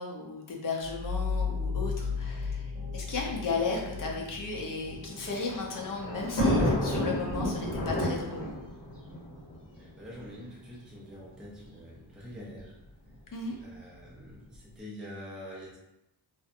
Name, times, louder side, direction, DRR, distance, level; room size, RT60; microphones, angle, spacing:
voice 1, 0.0-8.5 13.3-13.6, left 4 dB, 45° left, -1 dB, 0.6 m, -35 dB
sound 1, 0.8-10.1, left 5 dB, 60° right, 0.8 m, -37 dB
Thunder, 4.9-10.2 11.1-11.2 11.4-11.5 12.6-12.9, left 1 dB, 75° left, 1.0 m, -30 dB
voice 2, 9.8-12.8 13.6-15.8, equal, ahead, -5 dB, 0.4 m, -45 dB
2.7 x 2.1 x 2.4 m, 0.90 s
wide cardioid pair, 135°, 44 cm